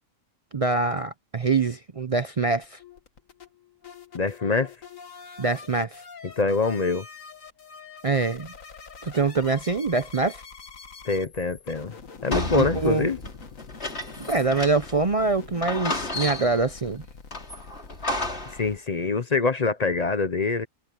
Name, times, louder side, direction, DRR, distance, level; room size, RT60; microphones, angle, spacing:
voice 1, 0.5-2.8 5.4-6.0 8.0-8.5 9.0-10.4 12.6-13.1 14.3-17.0, right 3 dB, 40° right, 0.5 m, -24 dB
sound 1, 2.4-18.8, left 5 dB, 80° left, 2.1 m, -45 dB
voice 2, 4.1-4.7 6.2-7.1 11.0-11.9 12.2-13.2 18.5-20.7, left 4 dB, 35° left, 0.8 m, -25 dB
sound 2, 12.3-15.0 15.3-15.4 15.6-16.7 17.3-18.6, left 2 dB, 55° left, 4.2 m, -32 dB
omnidirectional pair, 1.3 m